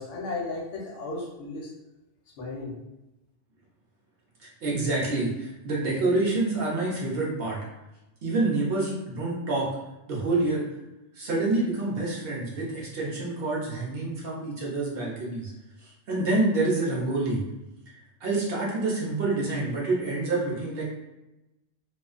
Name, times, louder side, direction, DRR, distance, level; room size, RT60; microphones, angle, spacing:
voice 1, 0.0-1.7 2.4-2.8, left 2 dB, 70° left, -2 dB, 0.9 m, -34 dB
voice 2, 4.4-7.6 8.2-9.7 10.1-10.7 11.1-15.5 16.1-17.4 18.2-20.8, right 2 dB, 55° right, -4 dB, 0.7 m, -27 dB
2.4 x 2.3 x 2.4 m, 0.97 s
omnidirectional pair, 1.3 m